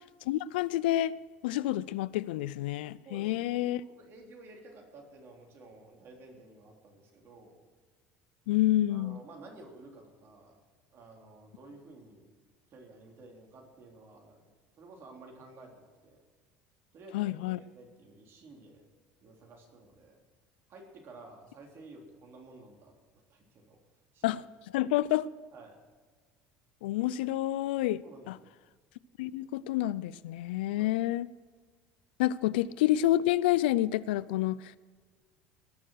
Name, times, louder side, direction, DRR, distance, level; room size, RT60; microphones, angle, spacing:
voice 1, 0.3-1.1 1.4-3.8 8.5-9.2 17.1-17.6 24.2-24.4 24.7-25.3 26.8-28.0 28.3-28.4 29.2-31.3 32.2-34.8, left 14 dB, 85° left, 19 dB, 0.4 m, -28 dB
voice 2, 3.1-7.5 8.9-10.6 10.9-12.3 12.7-14.5 14.8-16.2 16.9-18.9 19.2-20.2 20.7-23.0 23.3-23.8 24.1-24.3 25.5-25.8 28.0-28.5 30.8-30.9, right 2 dB, 50° right, 1 dB, 3.5 m, -52 dB
19.5 x 6.7 x 6.4 m, 1.5 s
supercardioid pair, 85°, 5 cm